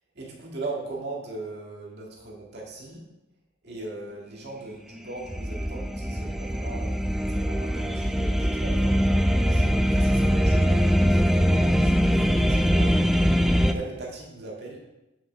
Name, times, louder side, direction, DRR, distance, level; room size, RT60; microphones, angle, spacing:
voice 1, 0.2-3.1 3.6-13.0 13.7-14.8, right 2 dB, 60° right, -2 dB, 1.9 m, -39 dB
sound 1, 5.0-13.7, equal, ahead, 0.3 m, -22 dB
5.9 x 5.7 x 6.1 m, 1.0 s
head